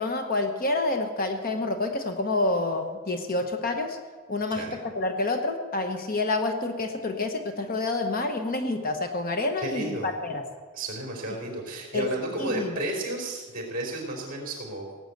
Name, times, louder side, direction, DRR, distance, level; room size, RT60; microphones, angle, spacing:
voice 1, 0.0-4.0 4.3-10.4 11.9-12.1 12.4-12.8, left 2 dB, 40° left, 6 dB, 1.1 m, -28 dB
voice 2, 9.6-10.1 10.7-14.9, right 1 dB, 40° right, 0 dB, 3.8 m, -32 dB
17.5 x 7.9 x 8.0 m, 1.5 s
head